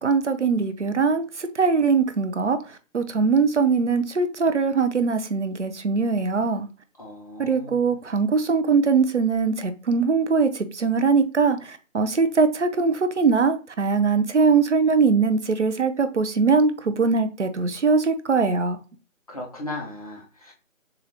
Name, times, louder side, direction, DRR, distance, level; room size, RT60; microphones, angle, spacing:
voice 1, 0.0-2.6 2.9-6.7 7.4-10.5 10.7-11.6 11.9-18.8, right 4 dB, 60° right, 0.7 m, -21 dB
voice 2, 7.0-7.9 19.3-20.5, left 2 dB, 25° left, 1.0 m, -37 dB
6.8 x 2.6 x 2.8 m
figure-of-eight pair, 155°, 41 cm